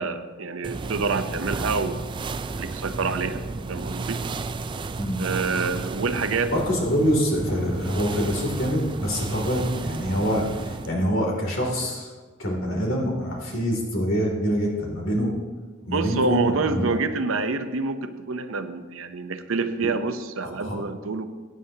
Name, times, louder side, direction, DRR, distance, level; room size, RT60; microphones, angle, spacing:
voice 1, 0.0-2.2 2.6-3.4 3.7-4.3 5.2-6.5 15.9-21.2, right 4 dB, 85° right, 9 dB, 0.7 m, -27 dB
sound 1, 0.6-10.9, right 3 dB, 25° right, 0.3 m, -32 dB
voice 2, 6.5-12.1 12.4-15.3 15.9-17.0 20.4-20.8, equal, 75° left, -1 dB, 2.8 m, -25 dB
16.5 x 9.4 x 2.8 m, 1.4 s
head